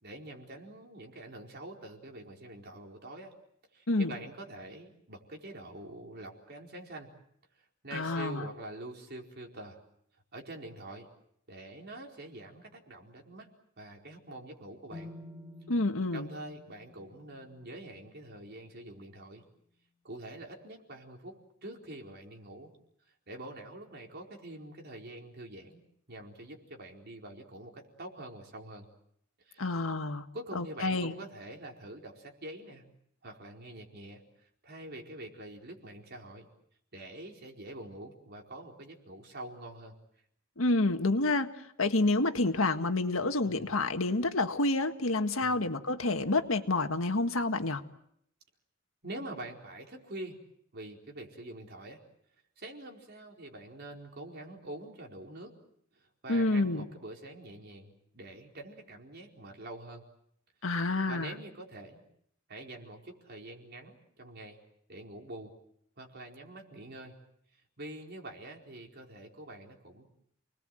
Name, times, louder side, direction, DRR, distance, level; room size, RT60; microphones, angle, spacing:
voice 1, 0.0-3.3 3.7-7.1 7.8-9.8 10.3-11.1 11.5-13.5 13.8-15.1 16.1-19.4 20.0-22.7 23.3-25.8 26.1-28.9 29.4-29.7 30.3-32.8 33.2-36.5 36.9-39.9 43.4-43.7 45.4-45.6 49.0-50.4 50.7-52.0 52.6-55.5 55.9-60.0 61.0-62.0 62.5-64.6 64.9-65.5 66.0-67.1 67.8-70.0, right 1 dB, 55° right, 1 dB, 4.5 m, -45 dB
voice 2, 7.9-8.4 15.7-16.3 29.6-30.2 30.5-31.1 40.6-41.5 41.8-47.8 56.3-56.8 60.6-61.3, left 2 dB, 80° left, 7 dB, 1.7 m, -28 dB
sound 1, 14.9-18.9, left 1 dB, 10° right, 3.5 m, -51 dB
30.0 x 20.5 x 7.8 m, 0.73 s
head